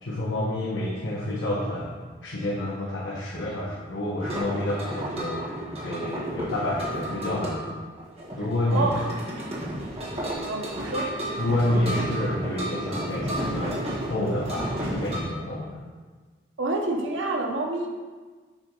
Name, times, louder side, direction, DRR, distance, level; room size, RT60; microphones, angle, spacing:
voice 1, 0.0-1.9 2.2-5.5 5.8-7.6 8.4-8.9 11.4-13.8 14.1-15.7, left 1 dB, 80° left, -6 dB, 1.3 m, -28 dB
sound 1, 4.2-15.2, right 1 dB, 30° right, 1.6 m, -32 dB
voice 2, 8.7-9.1 10.5-11.1 16.6-17.9, right 2 dB, 90° right, 1 dB, 1.0 m, -27 dB
7.9 x 3.9 x 5.5 m, 1.4 s
head